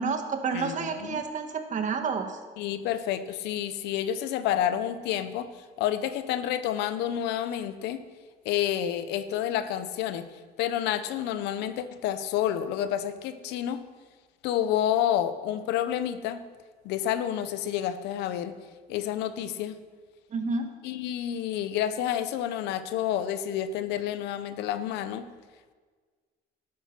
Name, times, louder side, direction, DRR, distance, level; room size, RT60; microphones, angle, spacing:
voice 1, 0.0-2.4 20.3-20.7, right 5 dB, 45° right, 6 dB, 1.6 m, -29 dB
voice 2, 0.5-1.2 2.6-8.0 8.4-10.3 10.6-13.8 14.4-16.4 16.8-18.6 18.9-19.8 20.8-25.3, left 10 dB, 90° left, 11 dB, 0.8 m, -29 dB
12.5 x 8.7 x 6.1 m, 1.5 s
cardioid pair, 110°, 17 cm